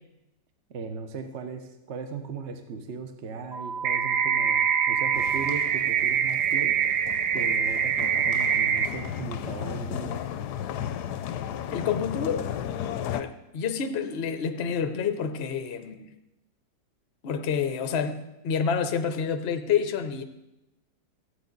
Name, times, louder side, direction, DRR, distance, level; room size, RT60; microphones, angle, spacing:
voice 1, 0.7-6.8 7.3-10.3, right 4 dB, 50° right, 7 dB, 1.0 m, -37 dB
sound 1, 3.5-5.5, right 5 dB, 25° left, 0.4 m, -34 dB
sound 2, 3.8-8.9, right 7 dB, 75° right, 1.3 m, -24 dB
sound 3, 5.1-13.2, left 10 dB, 70° left, 1.0 m, -35 dB
voice 2, 11.7-12.5 13.1-16.1 17.2-18.2 18.4-20.2, left 6 dB, 50° left, 8 dB, 0.7 m, -28 dB
14.5 x 8.7 x 4.0 m, 0.93 s
omnidirectional pair, 2.0 m